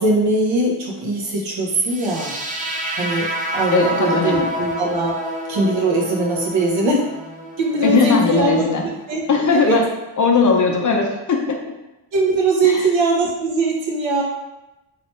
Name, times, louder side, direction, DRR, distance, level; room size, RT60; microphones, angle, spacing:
voice 1, 0.0-2.3 2.9-5.2 5.5-7.0 7.6-9.8 12.1-14.2, right 2 dB, 70° right, -1 dB, 1.0 m, -21 dB
sound 1, 1.8-9.9, right 1 dB, 20° right, 0.4 m, -29 dB
voice 2, 3.7-4.5 7.8-8.8 9.3-9.8 10.2-11.6 12.6-12.8, left 4 dB, 40° left, 1 dB, 0.6 m, -18 dB
3.2 x 3.0 x 3.0 m, 0.97 s
cardioid pair, 105°, 48 cm